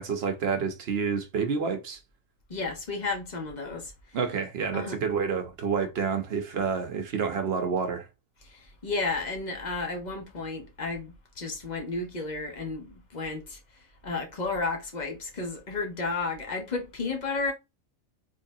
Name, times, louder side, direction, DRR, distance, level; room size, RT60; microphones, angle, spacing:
voice 1, 0.0-2.0 4.1-8.1, right 6 dB, 50° right, 0.9 m, -29 dB
voice 2, 2.5-3.9 4.7-5.0 8.5-13.6 14.0-17.5, left 3 dB, 35° left, 1.0 m, -32 dB
3.7 x 3.3 x 2.7 m
omnidirectional pair, 1.5 m